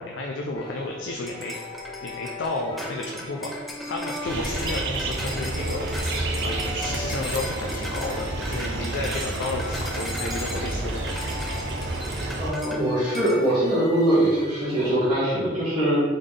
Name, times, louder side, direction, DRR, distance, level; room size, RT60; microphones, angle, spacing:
voice 1, 0.0-1.5 2.0-5.9 6.4-11.3, left 2 dB, 80° left, 0 dB, 0.4 m, -32 dB
sound 1, 0.5-15.0, left 1 dB, 20° left, 0.8 m, -41 dB
sound 2, 1.3-12.8 13.1-13.4, left 1 dB, ahead, 0.4 m, -37 dB
sound 3, 4.2-12.5, right 2 dB, 60° right, 0.5 m, -30 dB
voice 2, 12.4-16.0, right 1 dB, 25° right, -13 dB, 1.3 m, -22 dB
3.9 x 3.6 x 3.3 m, 1.4 s
head